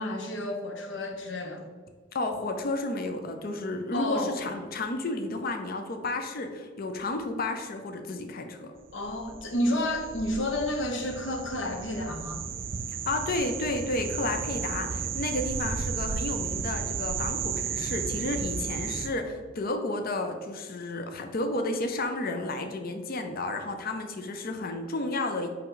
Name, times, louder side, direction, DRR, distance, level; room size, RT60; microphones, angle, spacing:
voice 1, 0.0-1.6 3.9-4.3 8.9-12.4, left 1 dB, 75° left, 4 dB, 0.9 m, -30 dB
voice 2, 2.1-8.7 12.9-25.5, left 2 dB, 50° left, 5 dB, 0.6 m, -32 dB
sound 1, 8.9-19.1, right 6 dB, 50° right, 0.4 m, -34 dB
5.6 x 5.0 x 3.9 m, 1.5 s
head